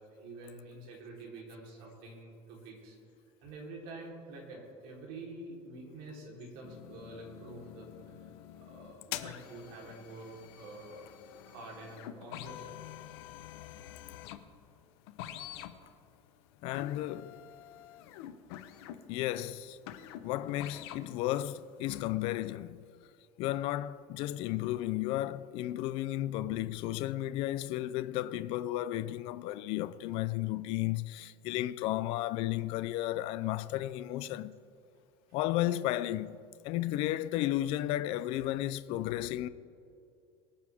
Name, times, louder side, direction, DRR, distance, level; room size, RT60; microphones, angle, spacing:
voice 1, 0.0-3.0 3.4-8.3 8.6-11.1 11.5-13.0 13.6-13.8 26.4-26.5 30.1-30.2, right 2 dB, 65° right, 3.7 m, -47 dB
sound 1, 6.6-21.2 21.5-22.0, left 12 dB, 80° left, 0.9 m, -47 dB
voice 2, 16.6-17.4 19.1-19.8 20.2-22.8 23.4-34.6 35.3-36.4 36.6-39.5, left 14 dB, 45° left, 0.4 m, -33 dB
24.0 x 8.5 x 3.5 m
cardioid pair, 180°, 13 cm